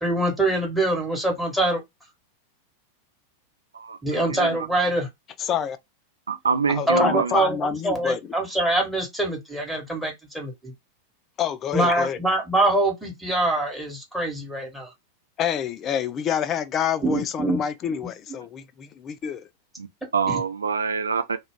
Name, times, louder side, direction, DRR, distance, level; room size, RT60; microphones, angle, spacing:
voice 1, 0.0-1.8 4.0-5.1 6.9-10.7 11.7-14.9 17.0-17.6 20.3-20.4, right 2 dB, 5° right, 0.9 m, -24 dB
voice 2, 3.7-4.6 6.3-7.4 19.8-19.9 20.1-21.4, right 5 dB, 75° right, 0.4 m, -25 dB
voice 3, 5.4-5.8 6.7-8.3 11.4-12.2 15.4-19.5, left 8 dB, 30° left, 0.4 m, -27 dB
2.3 x 2.0 x 3.5 m
figure-of-eight pair, 90°, 0 cm